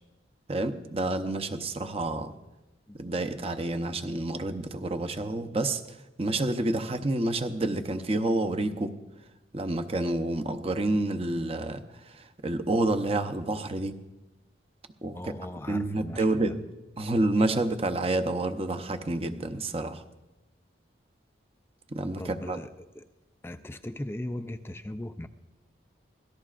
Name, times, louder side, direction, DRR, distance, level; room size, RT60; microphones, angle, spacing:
voice 1, 0.5-2.3 2.9-5.8 6.2-9.0 9.5-13.9 15.0-15.3 15.7-16.6 17.0-20.0 21.9-22.2 22.5-22.6, right 2 dB, 30° right, 7 dB, 0.7 m, -29 dB
voice 2, 15.1-16.6 22.2-23.1 23.4-25.3, left 1 dB, 10° left, 9 dB, 0.4 m, -38 dB
25.0 x 18.0 x 2.5 m, 1.0 s
head